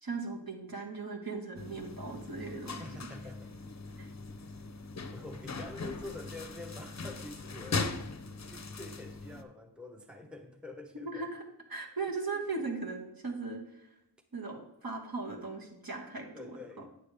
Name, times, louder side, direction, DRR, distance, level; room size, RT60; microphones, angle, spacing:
voice 1, 0.0-2.8 4.0-4.1 11.0-11.4 11.7-13.9 14.3-16.3, right 3 dB, 60° right, 1 dB, 1.4 m, -38 dB
sound 1, 1.6-9.4, left 3 dB, 45° left, 0.6 m, -40 dB
voice 2, 2.8-3.5 4.4-4.7 5.0-7.9 8.5-11.3 12.2-12.5 16.3-16.9, left 2 dB, ahead, 5 dB, 0.7 m, -47 dB
8.8 x 6.8 x 3.4 m, 0.80 s
wide cardioid pair, 60°, 40 cm